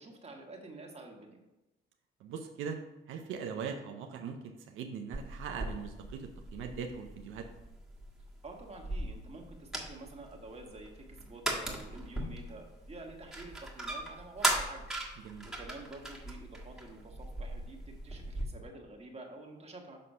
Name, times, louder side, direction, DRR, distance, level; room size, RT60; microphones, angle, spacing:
voice 1, 0.0-1.4 8.4-15.0 15.4-20.0, right 2 dB, 30° right, 1 dB, 1.4 m, -49 dB
voice 2, 2.2-2.8 3.1-7.5 15.2-15.5, right 6 dB, 85° right, 4 dB, 0.6 m, -40 dB
sound 1, 5.1-18.5, right 1 dB, ahead, 1.5 m, -39 dB
6.3 x 4.1 x 5.5 m, 1.0 s
cardioid pair, 90°, 20 cm